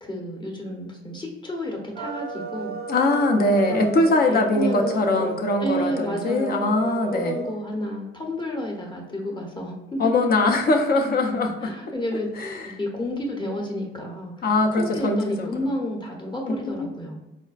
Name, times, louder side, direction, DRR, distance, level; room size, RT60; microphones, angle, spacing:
voice 1, 0.0-2.8 3.7-5.3 5.6-10.0 11.6-12.3 12.6-14.4 14.7-17.1, left 1 dB, 25° left, 0 dB, 0.8 m, -31 dB
sound 1, 1.9-7.6, right 5 dB, 50° right, 0.4 m, -33 dB
voice 2, 2.9-7.4 10.0-11.7 12.4-12.7 14.4-15.5 16.5-16.8, left 2 dB, 50° left, 3 dB, 0.6 m, -22 dB
4.1 x 2.1 x 2.3 m, 0.99 s
cardioid pair, 90°, 20 cm